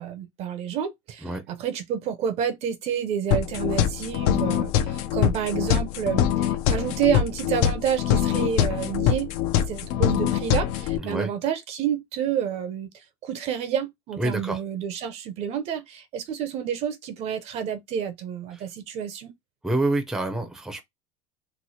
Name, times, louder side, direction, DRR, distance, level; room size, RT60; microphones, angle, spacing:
voice 1, 0.0-9.3 9.5-12.9 13.2-19.3, right 8 dB, 45° right, 0.6 m, -29 dB
sound 1, 3.3-11.0, left 10 dB, 60° left, 0.6 m, -24 dB
voice 2, 11.0-11.3 14.2-14.6 18.5-18.6 19.6-20.8, right 2 dB, ahead, 0.6 m, -27 dB
3.1 x 2.0 x 4.1 m
supercardioid pair, 135°, 16 cm